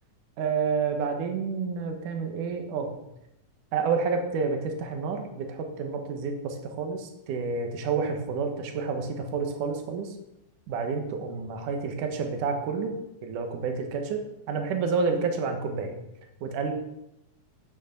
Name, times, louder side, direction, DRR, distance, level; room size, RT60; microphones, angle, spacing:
voice 1, 0.4-3.0 3.7-10.2 10.7-12.9 13.2-14.2 14.5-15.9 16.4-16.7, right 5 dB, 70° right, 4 dB, 2.8 m, -29 dB
12.0 x 6.4 x 6.9 m, 0.86 s
omnidirectional pair, 4.0 m